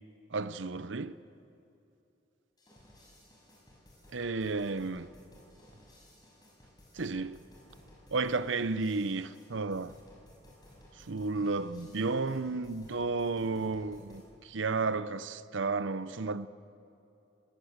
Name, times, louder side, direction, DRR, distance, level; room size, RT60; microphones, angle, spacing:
voice 1, 0.3-1.1 4.1-5.1 6.9-7.4 8.1-9.9 11.0-16.5, right 3 dB, 85° right, 0.7 m, -32 dB
sound 1, 2.6-14.3, left 1 dB, 20° left, 6.5 m, -58 dB
26.0 x 19.5 x 8.0 m
head